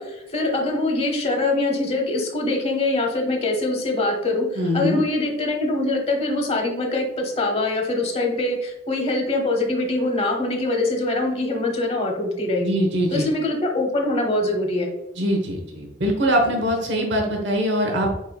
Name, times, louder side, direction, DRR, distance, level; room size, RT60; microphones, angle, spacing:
voice 1, 0.0-12.7 13.1-14.9, left 2 dB, 35° left, 2 dB, 0.9 m, -23 dB
voice 2, 4.6-5.0 12.6-13.3 15.2-18.1, equal, 80° right, 2 dB, 0.9 m, -22 dB
4.9 x 4.2 x 2.2 m, 0.88 s
head